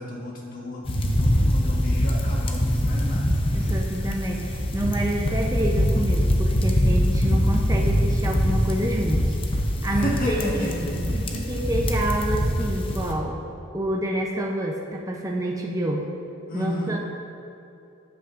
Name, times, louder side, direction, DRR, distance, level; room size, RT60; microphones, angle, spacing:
voice 1, 0.0-3.3 9.9-11.6 16.5-17.0, equal, 45° left, -3 dB, 1.6 m, -32 dB
sound 1, 0.8-13.1, equal, 25° left, 0.7 m, -23 dB
voice 2, 3.5-9.4 9.8-10.7 11.5-13.4 13.7-16.1 16.5-17.0, right 1 dB, 15° right, -1 dB, 0.6 m, -28 dB
12.5 x 8.3 x 2.5 m, 2.7 s
head